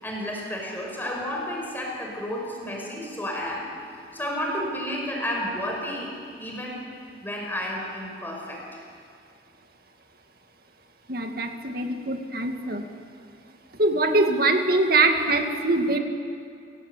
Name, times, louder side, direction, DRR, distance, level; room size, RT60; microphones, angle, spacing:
voice 1, 0.0-3.7 4.1-6.1 6.4-6.8 7.2-8.8, equal, 10° left, -1 dB, 5.6 m, -31 dB
voice 2, 11.1-12.8 13.8-16.0, right 2 dB, 55° right, 5 dB, 2.2 m, -23 dB
28.5 x 18.0 x 8.3 m, 2.4 s
head